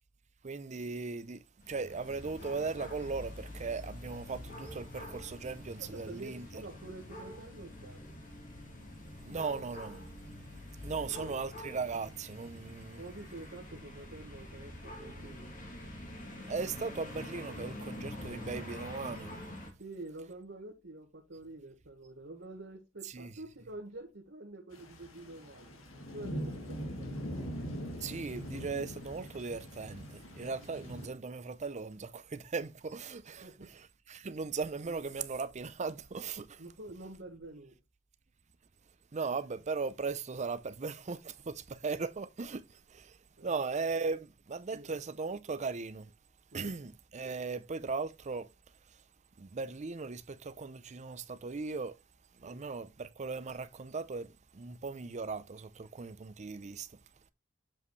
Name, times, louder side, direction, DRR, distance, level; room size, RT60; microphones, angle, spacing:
voice 1, 0.4-6.6 9.2-10.0 10.8-13.0 16.5-19.3 23.0-23.3 28.0-36.6 39.1-46.1 46.5-48.5 48.9-49.0 49.4-52.0 52.4-57.0, right 4 dB, 35° right, 0.5 m, -38 dB
sound 1, 1.6-19.7, left 1 dB, 40° left, 2.2 m, -46 dB
voice 2, 5.8-8.2 11.0-11.3 13.0-15.5 19.8-25.8 26.1-27.3 30.6-30.8 33.4-33.7 34.9-35.0 36.6-37.8 43.4-43.7 44.7-44.9 46.5-46.7 52.4-52.6, right 2 dB, 60° right, 1.4 m, -48 dB
sound 2, 24.7-31.1, equal, 85° left, 1.7 m, -42 dB
7.4 x 5.3 x 3.2 m
head